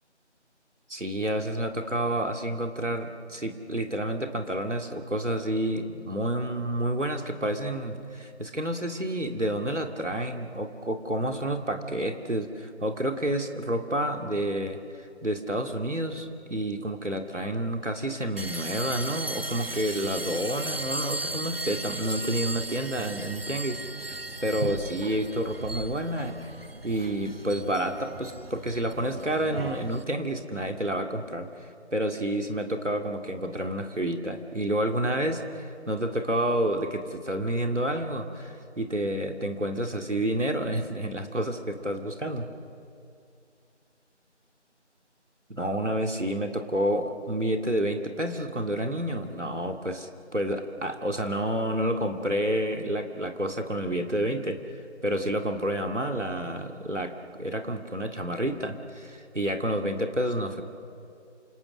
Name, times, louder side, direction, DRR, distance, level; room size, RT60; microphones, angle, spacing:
voice 1, 0.9-26.4 26.8-42.5 45.5-57.1 57.4-60.6, right 1 dB, 80° right, 5 dB, 2.5 m, -29 dB
sound 1, 18.4-30.0, right 2 dB, 55° right, 0.6 m, -36 dB
28.0 x 27.0 x 6.4 m, 2.5 s
figure-of-eight pair, 175°, 36 cm